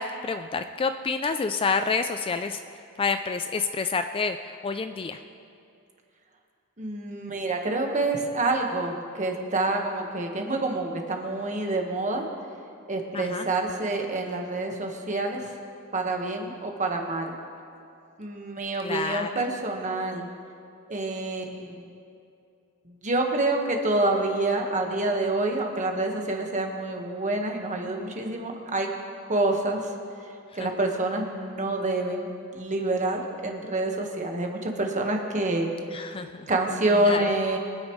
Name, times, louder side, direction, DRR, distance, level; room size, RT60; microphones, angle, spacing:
voice 1, 0.0-2.6 3.0-5.2 13.1-13.5 18.8-19.3 30.6-30.7 35.9-36.5 36.9-37.2, left 4 dB, 25° left, 8 dB, 0.3 m, -28 dB
voice 2, 6.8-12.3 12.9-15.4 15.9-17.3 18.2-20.3 20.9-21.9 22.9-28.9 29.3-29.9 30.5-35.7 36.5-37.6, right 2 dB, 35° right, 2 dB, 1.4 m, -27 dB
24.0 x 9.7 x 3.2 m, 2.5 s
head